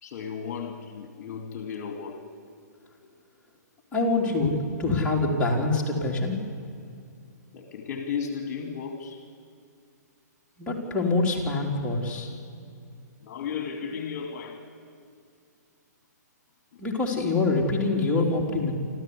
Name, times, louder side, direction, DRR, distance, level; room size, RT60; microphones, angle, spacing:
voice 1, 0.0-2.2 7.5-9.2 13.2-14.6, left 6 dB, 45° left, 4 dB, 2.4 m, -34 dB
voice 2, 3.9-6.4 10.6-12.3 16.8-18.7, left 3 dB, 10° left, -3 dB, 4.1 m, -25 dB
28.0 x 14.0 x 9.9 m, 2.4 s
hypercardioid pair, 130°, 10 cm